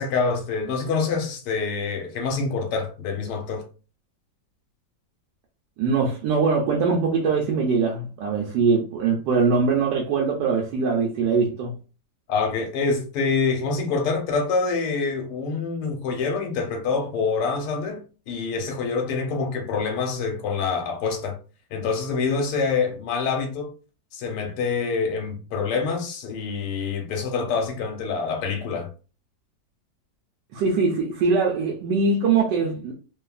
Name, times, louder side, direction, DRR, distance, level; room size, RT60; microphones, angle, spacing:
voice 1, 0.0-3.6 12.3-21.4 21.7-23.7 24.1-28.9, left 4 dB, 75° left, 1.3 m, -26 dB
voice 2, 5.8-11.7 30.5-32.9, right 4 dB, 80° right, 1.2 m, -22 dB
3.1 x 2.2 x 2.3 m
omnidirectional pair, 1.9 m